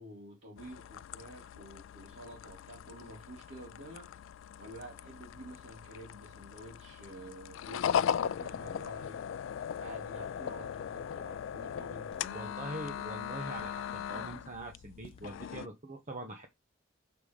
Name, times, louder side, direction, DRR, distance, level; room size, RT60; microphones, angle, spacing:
voice 1, 0.0-4.1 4.6-9.2 9.8-12.6, right 1 dB, 65° right, 3.5 m, -49 dB
sound 1, 0.6-15.7, left 8 dB, 75° left, 0.3 m, -38 dB
sound 2, 9.8-10.0 10.6-10.8 11.4-11.6 12.1-12.3 12.8-13.1 13.5-13.9 14.2-14.5 15.0-15.3, left 1 dB, 30° left, 0.8 m, -58 dB
voice 2, 12.3-16.5, right 2 dB, 40° right, 1.0 m, -43 dB
6.7 x 3.8 x 5.0 m
head